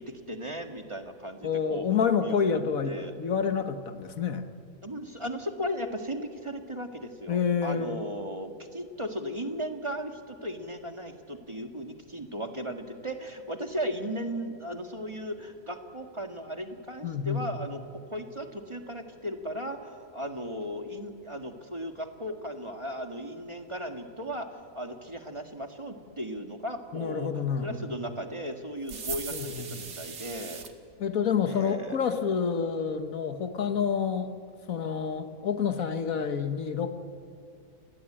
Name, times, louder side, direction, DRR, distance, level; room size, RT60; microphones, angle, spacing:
voice 1, 0.0-2.4 2.9-3.1 4.8-17.8 18.1-30.7 31.5-32.0, equal, 20° right, 5 dB, 1.9 m, -36 dB
voice 2, 1.4-4.5 7.3-8.1 17.0-17.5 26.9-27.8 29.3-29.9 31.0-34.3 34.7-36.9, left 6 dB, 80° left, 9 dB, 1.7 m, -28 dB
sound 1, 28.9-30.7, right 6 dB, 85° right, 2.0 m, -38 dB
29.0 x 20.5 x 8.8 m, 2.5 s
omnidirectional pair, 1.4 m